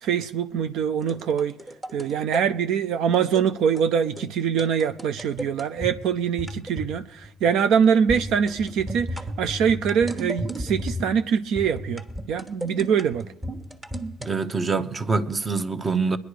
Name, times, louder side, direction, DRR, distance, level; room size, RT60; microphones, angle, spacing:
voice 1, 0.0-1.5 1.9-13.2, right 7 dB, 75° right, 0.5 m, -23 dB
sound 1, 1.0-2.4 3.1-3.5 3.7-3.9 4.2-4.3 4.6-5.9 6.4-7.0 7.2-7.5 8.1-11.2 11.6-14.3, equal, 15° right, 1.3 m, -33 dB
voice 2, 14.3-16.2, right 4 dB, 30° right, 1.0 m, -25 dB
21.5 x 10.5 x 5.0 m
supercardioid pair, 85°, 0 cm